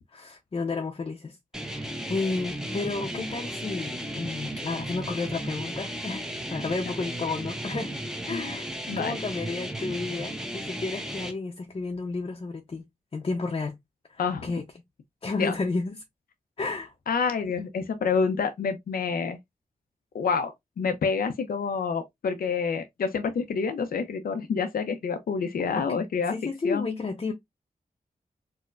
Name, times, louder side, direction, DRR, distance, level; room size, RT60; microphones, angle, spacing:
voice 1, 0.1-8.0 8.3-8.7 9.0-12.9 13.1-13.8 14.1-14.6 15.2-16.0 16.6-16.9 25.8-27.3, left 3 dB, 40° left, 0.6 m, -32 dB
sound 1, 1.5-11.3, right 1 dB, 5° right, 0.7 m, -35 dB
voice 2, 8.9-9.2 14.2-14.5 15.4-15.6 17.1-19.4 20.1-26.3 26.6-26.9, left 5 dB, 85° left, 0.5 m, -28 dB
4.5 x 2.1 x 2.4 m
wide cardioid pair, 75°, 15 cm